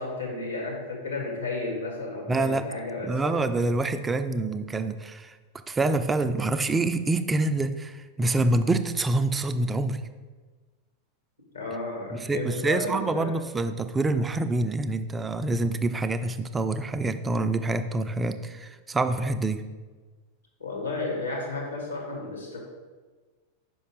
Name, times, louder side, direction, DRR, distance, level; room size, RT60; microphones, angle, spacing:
voice 1, 0.0-3.3 11.5-13.4 20.6-22.6, left 3 dB, 80° left, -1 dB, 1.6 m, -33 dB
voice 2, 2.3-2.6 3.0-5.3 5.7-10.0 12.1-19.7, right 2 dB, 15° right, 10 dB, 0.3 m, -26 dB
5.4 x 5.2 x 3.8 m, 1.4 s
figure-of-eight pair, 90°, 0 cm